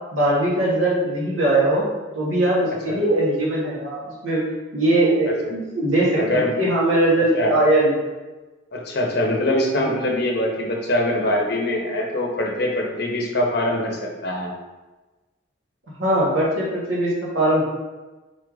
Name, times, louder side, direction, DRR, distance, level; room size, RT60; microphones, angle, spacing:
voice 1, 0.1-1.8 2.1-4.4 4.7-7.9 9.7-9.9 16.0-17.6, right 1 dB, 85° right, -6 dB, 1.1 m, -20 dB
voice 2, 6.2-6.5 7.3-7.6 8.7-14.5, left 1 dB, 50° left, 0 dB, 0.7 m, -23 dB
4.3 x 2.4 x 4.7 m, 1.2 s
head